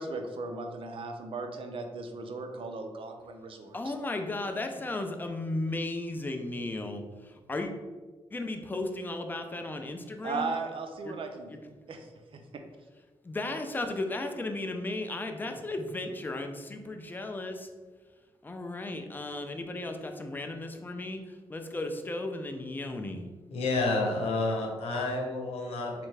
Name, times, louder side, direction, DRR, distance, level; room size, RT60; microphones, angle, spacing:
voice 1, 0.0-3.9 10.2-11.5 11.9-12.6, right 3 dB, 60° right, 5 dB, 0.5 m, -37 dB
voice 2, 3.7-7.7 8.3-10.5 11.0-11.1 11.5-11.6 13.2-17.7 18.4-23.3, left 2 dB, 20° left, 5 dB, 0.4 m, -35 dB
voice 3, 23.5-26.1, left 2 dB, 90° left, 1 dB, 0.8 m, -29 dB
3.6 x 3.3 x 3.2 m, 1.3 s
cardioid pair, 90°, 10 cm